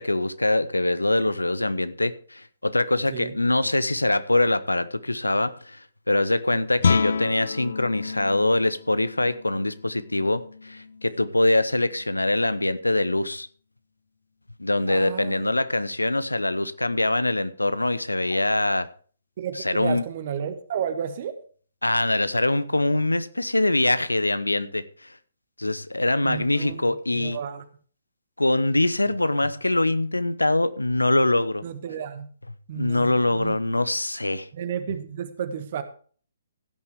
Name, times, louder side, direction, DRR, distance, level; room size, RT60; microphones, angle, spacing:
voice 1, 0.0-5.8 6.1-13.5 14.6-18.9 19.6-20.0 21.8-25.1 25.6-27.4 28.4-31.6 32.7-34.5, left 2 dB, 80° left, 0.8 m, -23 dB
Guitar, 6.8-12.3, left 5 dB, 55° left, 0.5 m, -30 dB
voice 2, 14.9-15.5 18.3-18.4 19.4-21.4 26.2-27.6 31.6-32.3 32.7-33.6 34.5-35.8, right 8 dB, 40° right, 1.5 m, -32 dB
16.0 x 9.7 x 3.5 m
figure-of-eight pair, 130°, 0 cm